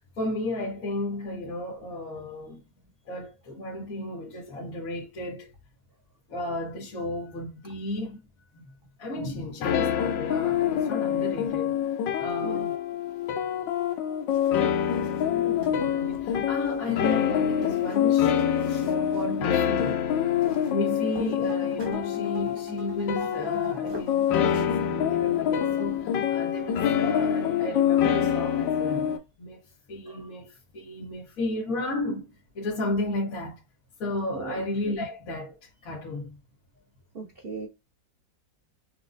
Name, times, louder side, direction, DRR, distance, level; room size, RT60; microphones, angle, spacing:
voice 1, 0.0-2.6 3.0-5.5 6.3-8.2 8.5-8.6 9.0-11.8 12.2-12.8 15.3-20.0 20.7-29.1 29.4-29.6 29.9-32.2 32.5-33.6 34.0-36.4, left 1 dB, 50° left, 1.4 m, -33 dB
sound 1, 9.6-29.2, left 9 dB, 80° left, 1.3 m, -26 dB
voice 2, 12.4-12.7 21.3-21.4 30.1-30.3 34.3-34.6 37.1-37.7, right 4 dB, 85° right, 0.5 m, -38 dB
sound 2, 14.3-24.9, left 1 dB, 20° right, 0.9 m, -48 dB
sound 3, 21.5-26.6, equal, 60° right, 1.7 m, -45 dB
6.4 x 2.1 x 2.5 m
omnidirectional pair, 2.0 m